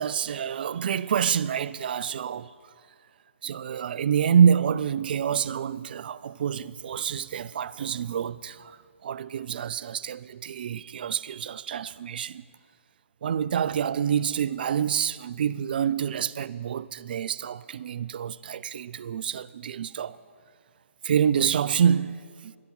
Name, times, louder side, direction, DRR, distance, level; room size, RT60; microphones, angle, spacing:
voice 1, 0.0-2.5 3.4-8.8 9.0-12.4 13.2-20.2 21.0-22.6, right 8 dB, 45° right, 0.4 m, -27 dB
13.0 x 12.0 x 5.5 m
figure-of-eight pair, 145°, 7 cm